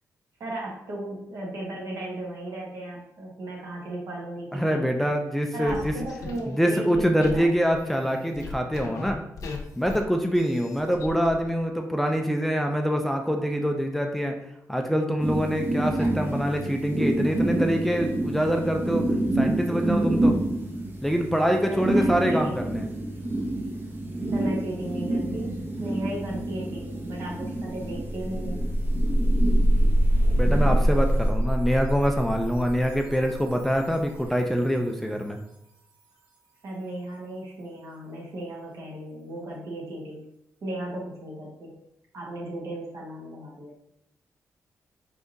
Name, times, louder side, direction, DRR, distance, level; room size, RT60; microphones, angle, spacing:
voice 1, 0.4-5.1 5.5-7.7 21.7-22.7 24.3-28.6 36.6-40.2 40.6-41.7 42.1-43.8, right 1 dB, 65° right, -3 dB, 1.4 m, -36 dB
voice 2, 4.5-5.9 6.5-9.2 9.8-14.3 14.7-19.0 19.4-20.4 21.0-22.9 30.4-35.4, equal, 5° left, 3 dB, 0.3 m, -25 dB
sound 1, 5.7-7.5 7.7-9.1 9.4-10.1 10.3-11.4, left 4 dB, 75° left, 0.7 m, -39 dB
sound 2, 15.2-31.3, right 1 dB, 35° right, 0.8 m, -28 dB
sound 3, 28.0-34.5, equal, 85° right, 1.3 m, -24 dB
4.5 x 3.5 x 2.6 m, 0.81 s
wide cardioid pair, 145°, 6 cm